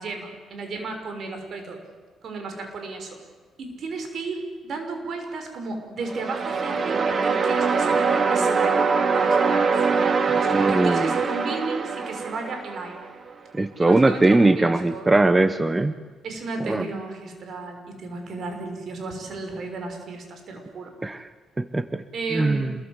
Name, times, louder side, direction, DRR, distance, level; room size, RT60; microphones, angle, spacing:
voice 1, 0.0-1.8 2.2-3.1 3.6-8.9 9.1-9.8 10.4-13.1 13.8-15.1 16.2-20.9 22.1-22.8, right 3 dB, 60° right, 5 dB, 6.3 m, -34 dB
sound 1, 6.0-13.0, right 5 dB, 40° right, 2.4 m, -23 dB
voice 2, 10.5-11.1 13.5-15.9 16.6-16.9 21.0-21.2 21.6-22.0 22.3-22.7, right 2 dB, 20° right, 12 dB, 1.1 m, -20 dB
27.0 x 22.0 x 8.3 m, 1.4 s
cardioid pair, 90°, 0 cm